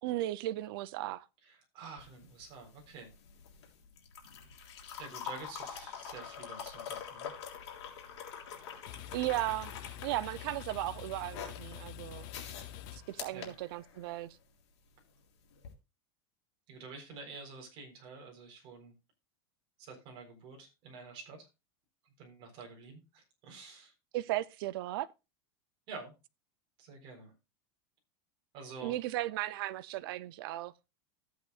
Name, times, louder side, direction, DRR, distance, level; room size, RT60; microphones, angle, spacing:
voice 1, 0.0-1.3 9.1-9.7 10.0-12.3 12.9-14.4 24.1-25.1 28.8-30.7, right 16 dB, 55° right, 0.6 m, -36 dB
voice 2, 1.4-3.1 5.0-7.3 13.3-13.5 16.7-18.9 19.8-21.5 22.2-23.9 25.9-26.1 26.8-27.3 28.5-28.9, right 4 dB, 35° right, 4.0 m, -48 dB
sound 1, 2.0-14.3 15.5-15.7, left 8 dB, 75° left, 3.4 m, -45 dB
sound 2, 8.6-13.8, left 11 dB, 50° left, 0.7 m, -47 dB
14.0 x 8.5 x 2.4 m
supercardioid pair, 170°, 14 cm